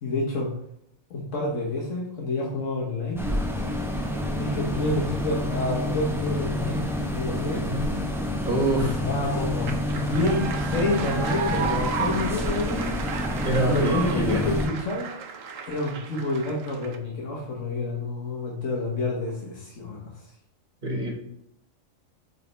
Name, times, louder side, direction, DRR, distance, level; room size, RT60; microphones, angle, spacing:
voice 1, 0.0-0.5 1.1-3.2 4.3-7.7 8.7-13.0 13.7-15.1 15.7-20.1, left 2 dB, 70° left, -3 dB, 1.4 m, -28 dB
sound 1, 3.2-14.7, left 1 dB, 5° right, 0.5 m, -28 dB
voice 2, 7.5-7.9 8.4-9.0 9.3-9.4 13.4-14.4 20.8-21.1, right 1 dB, 40° right, -1 dB, 1.9 m, -26 dB
sound 2, 8.9-17.0, right 6 dB, 80° right, 1.1 m, -34 dB
8.2 x 4.1 x 3.3 m, 0.73 s
omnidirectional pair, 1.3 m